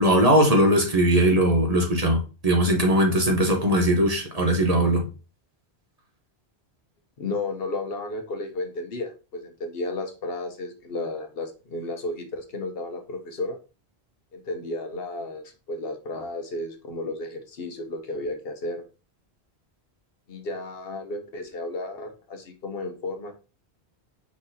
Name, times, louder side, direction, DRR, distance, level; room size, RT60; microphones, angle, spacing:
voice 1, 0.0-5.1, right 1 dB, 40° right, 0.9 m, -20 dB
voice 2, 7.2-13.6 14.3-18.8 20.3-23.3, left 2 dB, 65° left, 1.0 m, -33 dB
4.8 x 4.0 x 2.7 m
omnidirectional pair, 1.1 m